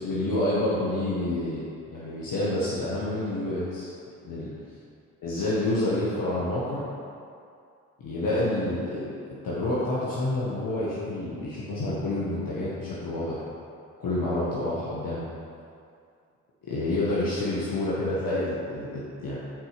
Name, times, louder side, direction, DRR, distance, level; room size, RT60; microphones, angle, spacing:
voice 1, 0.0-1.6 1.9-3.9 4.2-4.5 5.2-6.8 8.0-9.1 9.4-13.4 14.0-15.3 16.6-19.4, left 1 dB, 65° left, -8 dB, 1.6 m, -28 dB
7.5 x 4.8 x 5.1 m, 2.4 s
hypercardioid pair, 45°, 35 cm